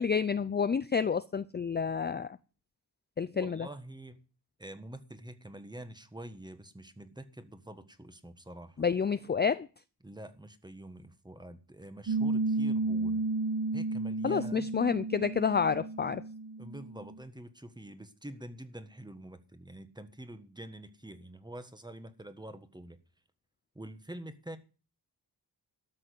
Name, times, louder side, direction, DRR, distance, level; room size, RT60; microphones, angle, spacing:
voice 1, 0.0-2.4 3.2-3.7 8.8-9.7 14.2-16.2, left 6 dB, 25° left, 0.5 m, -29 dB
voice 2, 3.3-4.2 4.6-8.8 10.0-13.2 13.7-14.7 16.6-23.0 23.7-24.6, right 1 dB, 10° right, 1.5 m, -46 dB
Piano, 12.1-17.2, right 3 dB, 60° right, 1.6 m, -32 dB
13.0 x 6.3 x 7.9 m
cardioid pair, 85°, 41 cm